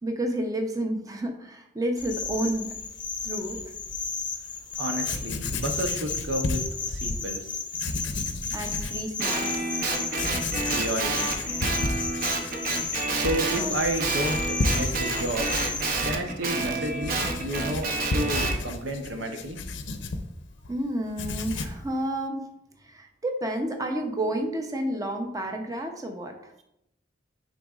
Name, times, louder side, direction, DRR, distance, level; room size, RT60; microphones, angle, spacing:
voice 1, 0.0-2.7 3.2-3.6 8.5-9.9 13.6-13.7 20.7-22.4 22.8-26.5, right 1 dB, 20° right, 4 dB, 0.7 m, -30 dB
sound 1, 2.0-16.1, left 4 dB, 25° left, 0.7 m, -34 dB
Writing, 4.7-4.8 5.0-7.2 7.7-9.0 9.5-9.6 10.1-20.7 21.0-21.9, left 2 dB, 90° left, 0.6 m, -33 dB
voice 2, 4.8-6.6 6.9-7.6 10.7-11.3 12.8-15.5 16.0-19.6, right 1 dB, 85° right, 5 dB, 0.8 m, -31 dB
Guitar, 9.2-13.7 14.0-18.6, right 3 dB, 50° right, 0.8 m, -29 dB
9.8 x 4.0 x 2.4 m, 0.82 s
head